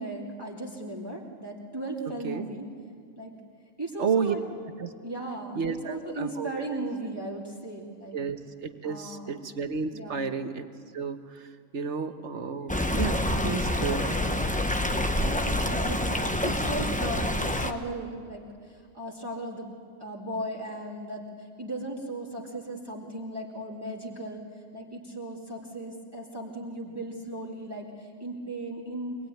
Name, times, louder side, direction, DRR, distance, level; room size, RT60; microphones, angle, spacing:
voice 1, 0.0-2.7 3.2-3.3 3.8-4.4 5.0-5.6 5.8-8.2 8.8-9.4 9.9-10.3 15.2-19.7 20.0-24.4 24.7-29.2, right 1 dB, 20° right, -3 dB, 2.6 m, -37 dB
voice 2, 4.0-4.4 4.8-4.9 5.5-6.7 8.1-10.6 10.9-14.2, right 6 dB, 60° right, 8 dB, 1.5 m, -32 dB
Stream, 12.7-17.7, left 1 dB, 5° left, 0.9 m, -27 dB
25.0 x 20.0 x 9.2 m, 2.2 s
omnidirectional pair, 1.3 m